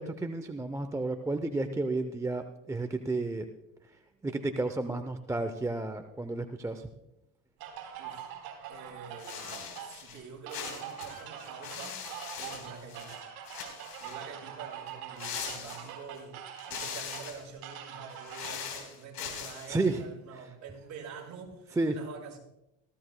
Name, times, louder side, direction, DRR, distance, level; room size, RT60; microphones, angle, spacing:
voice 1, 0.0-3.5 4.2-6.9 19.7-20.0 21.8-21.9, right 2 dB, 5° right, 8 dB, 0.6 m, -31 dB
sound 1, 7.6-18.7, right 9 dB, 55° right, 3.9 m, -44 dB
voice 2, 8.0-8.3 8.7-12.1 12.4-13.2 14.0-22.4, right 5 dB, 40° right, -1 dB, 5.1 m, -47 dB
sound 2, 9.2-10.2 10.5-13.2 13.5-14.3 15.2-16.2 16.6-17.5 18.1-19.7, left 7 dB, 55° left, 3.9 m, -41 dB
18.5 x 15.0 x 2.2 m, 0.87 s
supercardioid pair, 110°, 42 cm